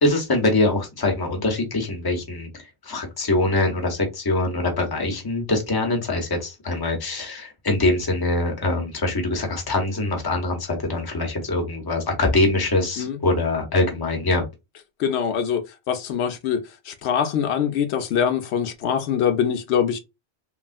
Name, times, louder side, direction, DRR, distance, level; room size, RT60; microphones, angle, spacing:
voice 1, 0.0-2.5 2.8-14.4, left 2 dB, 25° left, 0.7 m, -23 dB
voice 2, 15.0-20.0, left 8 dB, 80° left, 0.8 m, -24 dB
3.2 x 2.3 x 2.4 m
omnidirectional pair, 1.1 m